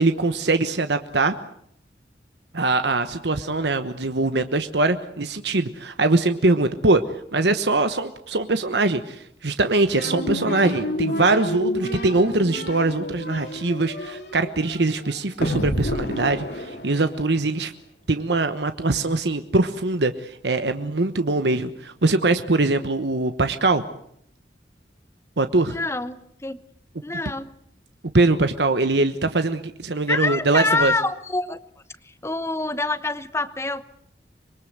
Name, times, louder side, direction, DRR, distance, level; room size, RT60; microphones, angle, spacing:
voice 1, 0.0-1.3 2.5-7.0 7.3-17.7 18.1-23.8 25.4-25.8 28.1-30.9, right 2 dB, 75° right, 9 dB, 1.2 m, -22 dB
sound 1, 9.9-17.4, left 1 dB, 70° left, 3.7 m, -29 dB
voice 2, 25.7-26.6 27.0-27.5 30.1-31.6 32.0-33.8, left 2 dB, 15° left, 13 dB, 0.9 m, -26 dB
25.5 x 22.0 x 8.0 m, 0.70 s
head